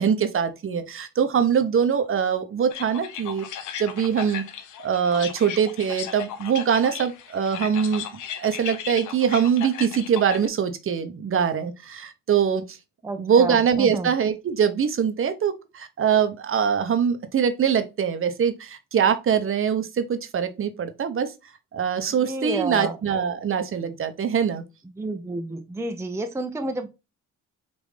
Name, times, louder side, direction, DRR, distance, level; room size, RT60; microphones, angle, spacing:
voice 1, 0.0-3.4 3.8-4.4 4.8-8.0 8.4-12.8 13.2-21.3 21.7-24.6, right 7 dB, 45° right, 0.7 m, -23 dB
sound 1, 2.7-10.5, left 8 dB, 80° left, 0.8 m, -36 dB
voice 2, 13.0-14.1 22.2-23.0 24.8-26.9, right 2 dB, 10° right, 0.5 m, -30 dB
5.2 x 2.6 x 3.2 m
cardioid pair, 90°, 30 cm